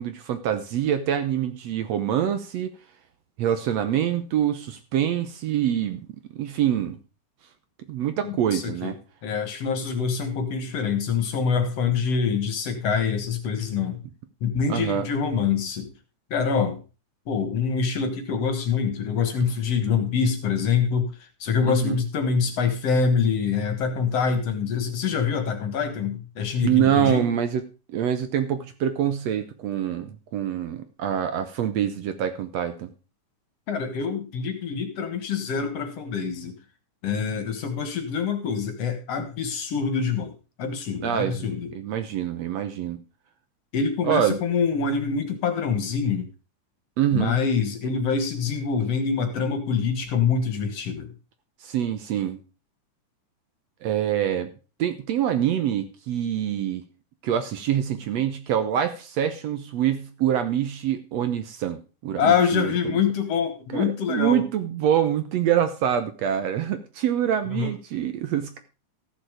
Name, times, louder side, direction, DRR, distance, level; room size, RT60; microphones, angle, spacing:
voice 1, 0.0-2.7 3.4-6.1 6.3-7.0 7.9-9.0 14.7-15.1 21.7-22.0 26.6-27.6 27.9-32.9 41.0-43.0 44.1-44.4 47.0-47.4 51.6-52.4 53.8-54.5 54.8-56.8 57.2-63.0 63.7-68.6, right 10 dB, 65° right, 10 dB, 1.9 m, -25 dB
voice 2, 8.2-8.9 9.2-14.0 14.4-15.9 16.3-16.8 17.3-21.1 21.4-27.3 33.7-36.6 37.0-41.7 43.7-46.3 47.1-51.1 62.2-64.4 67.5-67.7, left 6 dB, 60° left, 8 dB, 2.4 m, -25 dB
14.5 x 7.1 x 5.0 m, 0.33 s
omnidirectional pair, 3.5 m